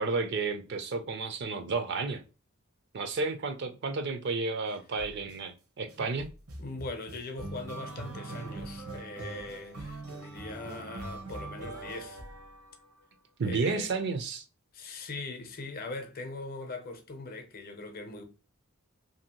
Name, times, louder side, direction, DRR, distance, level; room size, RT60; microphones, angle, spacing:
voice 1, 0.0-2.2 2.9-6.3 13.4-14.4, right 4 dB, 50° right, 0.4 m, -32 dB
sound 1, 5.0-5.4 5.9-13.1, right 2 dB, 85° right, 0.9 m, -42 dB
voice 2, 6.6-12.2 13.5-13.9 14.7-18.2, left 3 dB, 45° left, 0.6 m, -41 dB
2.8 x 2.6 x 2.8 m
head